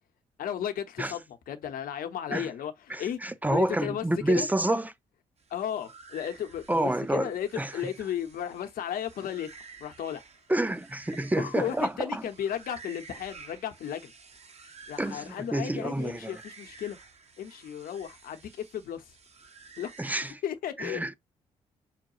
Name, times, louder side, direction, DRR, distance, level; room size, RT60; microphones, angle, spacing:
voice 1, 0.4-3.2 3.5-4.5 5.5-9.5 9.8-10.2 11.3-14.1 14.9-17.0 17.4-19.0 19.8-19.9 20.4-21.2, left 9 dB, 65° left, 0.9 m, -34 dB
voice 2, 2.9-4.9 6.7-7.8 10.5-12.2 15.0-16.4 20.0-20.4 20.8-21.2, right 1 dB, 10° right, 0.6 m, -29 dB
sound 1, 5.4-20.3, right 4 dB, 45° right, 0.9 m, -52 dB
5.7 x 2.3 x 2.8 m
hypercardioid pair, 50°, 16 cm